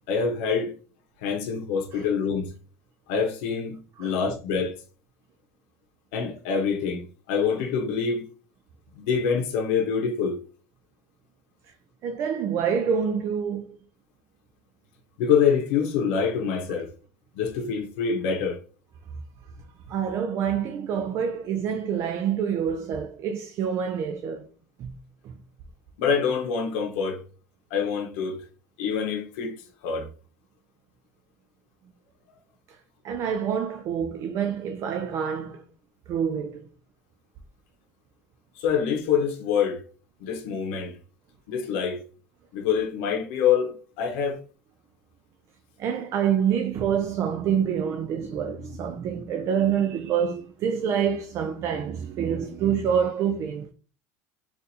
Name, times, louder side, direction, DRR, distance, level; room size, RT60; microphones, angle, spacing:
voice 1, 0.1-0.7 1.2-2.5 3.1-4.7 6.1-8.2 9.0-10.4 15.2-16.9 17.3-18.6 26.0-27.2 27.7-28.4 28.8-29.5 29.8-30.1 38.6-39.8 40.2-40.9 41.5-42.0 42.5-44.4, left 6 dB, 75° left, 0.8 m, -25 dB
voice 2, 12.0-13.6 19.9-24.5 24.8-24.9 25.2-25.3 33.0-35.6 36.1-36.7 45.8-53.7, right 8 dB, 45° right, 0.4 m, -27 dB
4.1 x 2.5 x 2.7 m
supercardioid pair, 125°, 7 cm